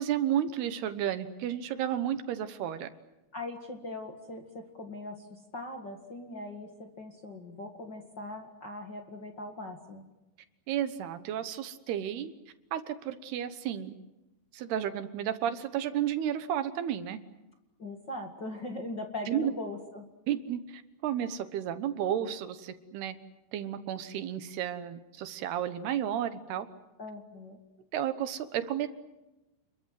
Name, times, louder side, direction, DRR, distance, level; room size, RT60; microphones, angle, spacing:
voice 1, 0.0-2.9 10.7-12.3 12.7-13.9 14.5-17.2 19.3-19.5 20.3-23.2 23.5-26.7 27.9-28.9, right 10 dB, 70° right, 11 dB, 2.9 m, -32 dB
voice 2, 3.3-10.0 17.8-20.0 27.0-27.6, left 2 dB, 45° left, 3 dB, 1.4 m, -40 dB
29.5 x 22.0 x 7.7 m, 1.0 s
omnidirectional pair, 5.2 m